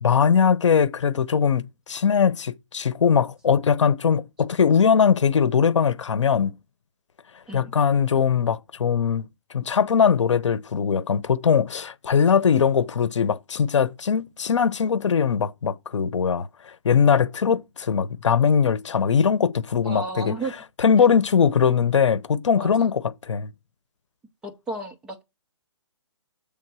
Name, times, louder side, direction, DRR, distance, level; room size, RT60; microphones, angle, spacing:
voice 1, 0.0-6.6 7.5-9.3 9.5-20.3 20.8-23.5, left 6 dB, 75° left, 0.8 m, -21 dB
voice 2, 19.8-20.5 22.6-22.9 24.4-25.2, right 2 dB, 5° right, 0.5 m, -33 dB
7.7 x 3.5 x 6.1 m
hypercardioid pair, 165°, 15 cm